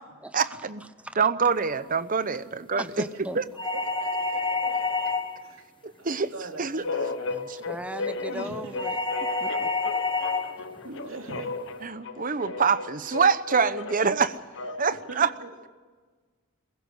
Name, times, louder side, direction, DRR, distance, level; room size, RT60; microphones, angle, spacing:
voice 1, 0.3-0.8 1.2-2.8 3.4-3.5 5.8-6.3 6.6-6.8 11.8-14.4 14.8-15.3, right 5 dB, 40° right, 13 dB, 0.9 m, -25 dB
voice 2, 2.8-3.4 7.3-9.0 9.4-9.7 10.8-10.9, right 1 dB, 5° right, 11 dB, 0.8 m, -38 dB
sound 1, 3.6-5.5 8.8-10.6, left 3 dB, 25° left, 1.1 m, -28 dB
voice 3, 3.7-5.6 6.0-7.3 8.3-8.9 10.8-11.6 14.9-15.5, right 2 dB, 70° right, 3 dB, 3.0 m, -41 dB
sound 2, 6.8-15.1, left 3 dB, 60° left, 1.1 m, -35 dB
22.5 x 15.5 x 7.8 m, 1.4 s
head